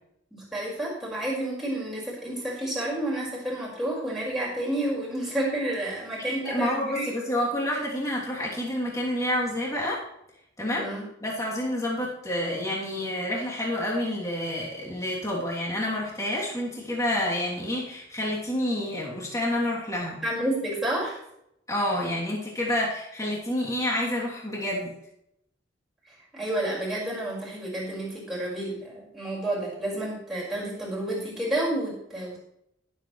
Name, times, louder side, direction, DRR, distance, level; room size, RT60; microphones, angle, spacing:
voice 1, 0.3-7.1 10.7-11.1 20.2-21.2 26.1-32.4, right 1 dB, ahead, -7 dB, 5.2 m, -30 dB
voice 2, 6.4-10.0 10.6-10.9 11.2-20.2 21.7-24.9, left 1 dB, 15° left, -5 dB, 3.0 m, -28 dB
20.0 x 8.0 x 3.2 m, 0.77 s
head